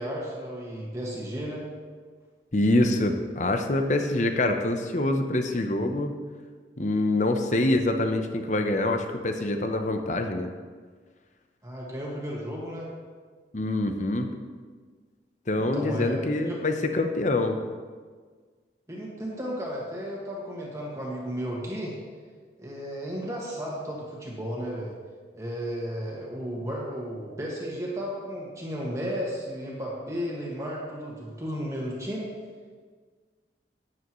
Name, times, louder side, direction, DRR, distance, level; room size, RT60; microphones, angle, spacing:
voice 1, 0.0-1.6 11.6-12.9 15.6-16.6 18.9-22.0 22.6-24.9 25.3-32.3, equal, 15° right, -4 dB, 1.8 m, -34 dB
voice 2, 2.5-6.1 6.8-10.5 13.5-14.3 15.5-17.6, left 2 dB, 40° left, 6 dB, 0.8 m, -25 dB
13.0 x 9.5 x 3.1 m, 1.5 s
head